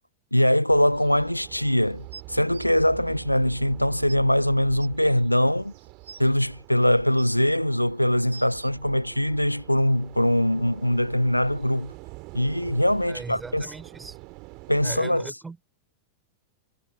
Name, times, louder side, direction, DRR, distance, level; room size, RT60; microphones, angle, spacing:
voice 1, 0.3-5.7 6.2-11.9 12.3-13.7 14.7-15.3, left 1 dB, 90° left, 0.5 m, -22 dB
sound 1, 0.7-15.0, right 26 dB, 40° right, 2.5 m, -45 dB
sound 2, 2.1-2.7 3.7-3.8 4.1-4.2 4.8-4.9 5.7-6.3 6.9-7.6 8.1-8.7 9.7-9.8, right 5 dB, 75° right, 3.9 m, -45 dB
voice 2, 13.0-14.2 14.8-15.6, right 4 dB, 10° right, 3.4 m, -39 dB
figure-of-eight pair, 90°, 0 cm